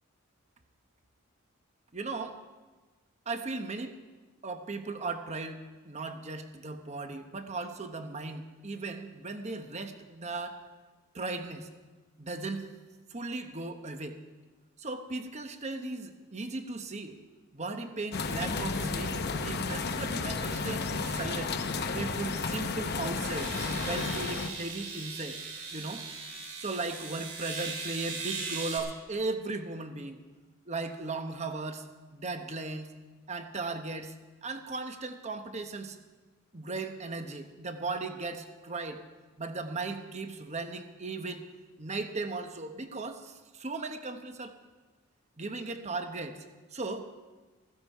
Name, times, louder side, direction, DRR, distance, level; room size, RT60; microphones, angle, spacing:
voice 1, 1.9-2.4 3.3-3.9 4.4-5.6 5.8-10.6 11.1-11.7 12.2-12.7 13.1-14.2 14.8-17.2 17.5-21.6 21.9-23.5 23.8-25.4 25.7-26.0 26.6-30.2 30.7-31.9 32.1-32.9 33.3-34.1 34.4-36.0 36.5-39.0 39.4-41.4 41.8-44.5 45.4-46.4 46.7-47.0, right 3 dB, 30° right, 7 dB, 1.0 m, -37 dB
sound 1, 18.1-24.5, left 4 dB, 50° left, 0.9 m, -32 dB
sound 2, 23.3-28.8, right 4 dB, 80° right, 3.6 m, -39 dB
15.5 x 14.5 x 4.7 m, 1.3 s
head